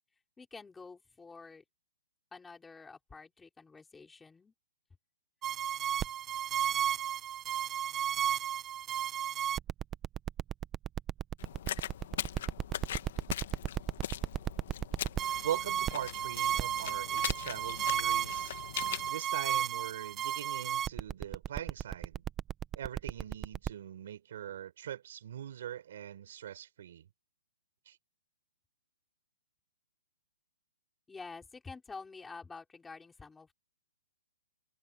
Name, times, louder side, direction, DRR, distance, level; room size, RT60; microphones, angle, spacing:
voice 1, 0.4-1.6 2.3-4.5 31.1-33.5, left 4 dB, 5° left, 4.8 m, -49 dB
sound 1, 5.4-23.7, right 10 dB, 10° right, 0.5 m, -33 dB
sound 2, 11.4-19.1, left 11 dB, 40° left, 1.2 m, -41 dB
voice 2, 15.4-18.6 19.1-22.2 22.7-27.1 27.9-28.0, right 10 dB, 45° right, 4.4 m, -41 dB
hypercardioid pair, 180°, 0 cm